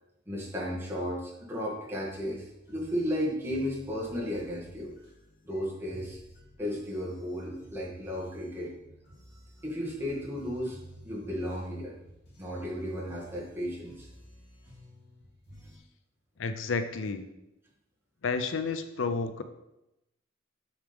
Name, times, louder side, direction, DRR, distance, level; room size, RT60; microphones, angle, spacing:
voice 1, 0.3-4.9 5.4-6.2 6.6-8.7 9.6-10.8 11.0-11.9 12.4-14.1, equal, 15° right, -5 dB, 2.0 m, -34 dB
sound 1, 2.0-15.8, equal, 55° left, 2.9 m, -54 dB
voice 2, 16.4-17.3 18.2-19.4, left 4 dB, 80° left, 9 dB, 0.5 m, -31 dB
8.0 x 6.4 x 3.5 m, 0.90 s
head